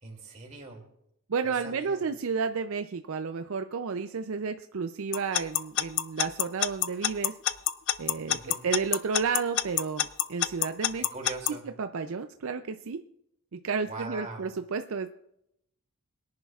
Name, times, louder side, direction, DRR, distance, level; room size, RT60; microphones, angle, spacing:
voice 1, 0.0-0.9 1.4-2.0 8.3-8.6 11.0-11.7 13.9-14.5, right 3 dB, 35° right, 1 dB, 2.7 m, -41 dB
voice 2, 1.3-7.3 8.0-11.0 11.6-13.0 13.5-15.1, right 5 dB, 70° right, 8 dB, 0.5 m, -32 dB
Alarm / Clock, 5.1-11.5, left 12 dB, 55° left, 0.5 m, -26 dB
22.5 x 10.5 x 2.4 m, 0.78 s
head